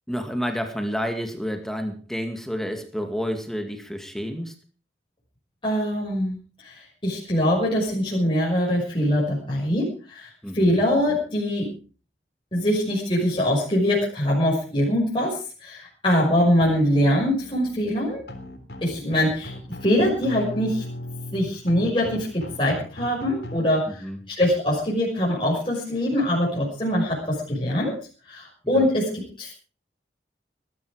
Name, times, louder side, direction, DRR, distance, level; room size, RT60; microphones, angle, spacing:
voice 1, 0.1-4.5 10.4-10.8 24.0-24.2 28.7-28.8, equal, ahead, 5 dB, 2.2 m, -30 dB
voice 2, 5.6-6.4 6.6-11.7 12.5-18.2 18.8-19.5 19.8-20.8 21.3-27.9 28.3-29.5, equal, 30° left, -5 dB, 6.0 m, -23 dB
sound 1, 16.6-23.6, left 1 dB, 65° left, 3.5 m, -38 dB
19.5 x 13.0 x 5.0 m, 0.38 s
head